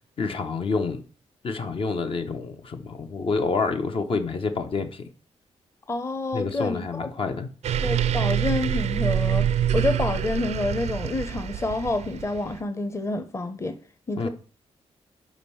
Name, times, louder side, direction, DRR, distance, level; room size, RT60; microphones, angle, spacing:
voice 1, 0.2-1.0 1.4-5.0 6.3-7.5 14.2-14.3, left 4 dB, 50° left, 0.8 m, -28 dB
voice 2, 5.9-7.1 7.8-9.5 9.7-13.8 14.1-14.3, left 2 dB, 25° left, 0.8 m, -28 dB
sound 1, 7.6-12.6, right 9 dB, 75° right, 0.5 m, -26 dB
5.3 x 5.2 x 5.5 m
wide cardioid pair, 120°, 12 cm